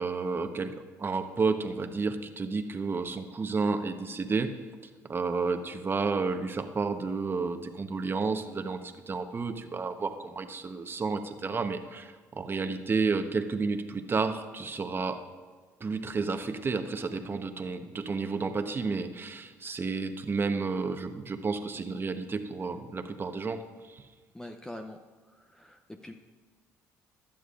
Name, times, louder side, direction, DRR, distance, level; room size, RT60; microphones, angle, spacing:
voice 1, 0.0-4.5 5.0-15.2 15.8-23.6 23.9-24.0, right 4 dB, 35° right, 7 dB, 1.0 m, -31 dB
voice 2, 24.3-25.0 25.2-26.1, left 1 dB, 10° left, 5 dB, 0.7 m, -44 dB
16.0 x 11.0 x 2.5 m, 1.5 s
supercardioid pair, 70°, 7 cm